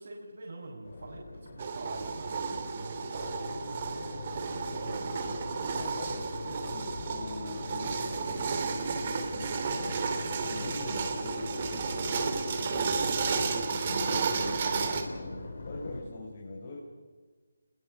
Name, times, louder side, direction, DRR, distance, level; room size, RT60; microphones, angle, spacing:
voice 1, 0.0-5.2, right 2 dB, 60° right, -4 dB, 5.9 m, -44 dB
Crowd, 0.8-16.0, left 2 dB, 55° left, 5.1 m, -42 dB
sound 1, 1.6-15.0, right 5 dB, 30° right, 2.6 m, -33 dB
voice 2, 5.7-13.2 13.5-16.8, left 2 dB, 40° left, -1 dB, 4.4 m, -42 dB
25.5 x 21.0 x 6.7 m, 1.4 s
figure-of-eight pair, 170°, 0 cm